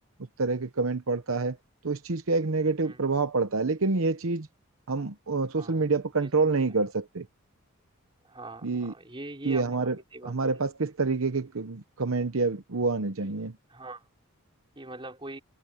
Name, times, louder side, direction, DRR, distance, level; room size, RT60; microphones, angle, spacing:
voice 1, 0.4-1.6 1.8-4.5 4.9-7.3 8.6-8.9 9.5-10.0 10.2-13.6, right 3 dB, 70° right, 0.9 m, -27 dB
voice 2, 6.2-6.6 8.2-10.6 13.2-13.4 13.7-14.1 14.7-15.4, right 2 dB, 25° right, 4.8 m, -43 dB
head